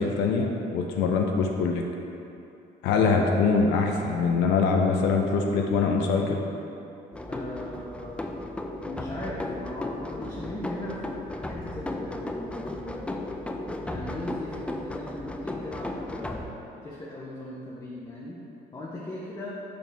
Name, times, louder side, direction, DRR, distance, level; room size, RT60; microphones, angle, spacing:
voice 1, 0.0-1.8 2.8-6.4, left 4 dB, 90° left, 2 dB, 0.5 m, -23 dB
voice 2, 3.0-3.3 7.3-8.3 8.8-13.3 13.8-18.4 18.7-19.6, left 1 dB, 25° left, -5 dB, 0.7 m, -39 dB
sound 1, 7.1-16.4, left 1 dB, 5° left, 0.3 m, -35 dB
6.4 x 4.4 x 3.4 m, 2.8 s
cardioid pair, 110°, 17 cm